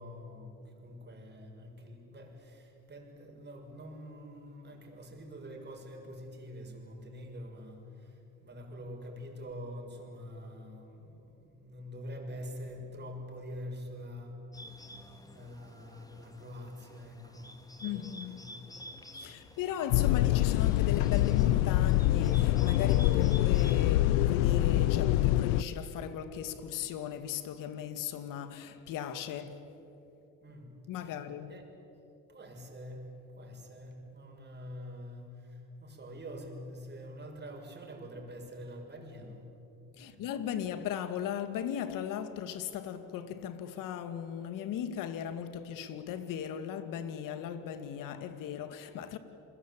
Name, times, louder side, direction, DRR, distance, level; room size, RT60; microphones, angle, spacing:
voice 1, 0.0-14.9 15.2-18.9 19.3-19.5 30.4-31.7 32.3-39.5 40.0-40.3, equal, 30° right, 6.6 m, -46 dB
Bird, 14.5-24.2, equal, 10° left, 2.7 m, -51 dB
voice 2, 17.8-18.4 19.1-29.7 30.9-31.5 40.0-49.2, left 9 dB, 65° left, 2.2 m, -37 dB
sound 1, 19.9-25.6, left 15 dB, 90° left, 0.7 m, -25 dB
29.5 x 22.0 x 8.8 m
supercardioid pair, 95°, 35 cm